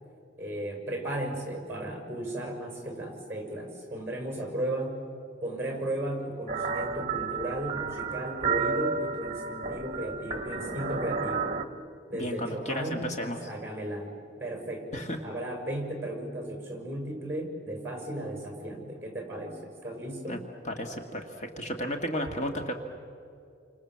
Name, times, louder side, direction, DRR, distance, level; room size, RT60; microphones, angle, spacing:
voice 1, 0.4-5.0 5.4-11.5 12.1-20.4, right 1 dB, 15° right, 4 dB, 6.2 m, -35 dB
sound 1, 6.5-11.6, right 5 dB, 35° right, 1.7 m, -32 dB
voice 2, 12.1-13.5 14.9-15.2 20.3-20.4 20.6-22.7, equal, 40° left, 4 dB, 1.8 m, -33 dB
30.0 x 26.5 x 7.6 m, 2.5 s
head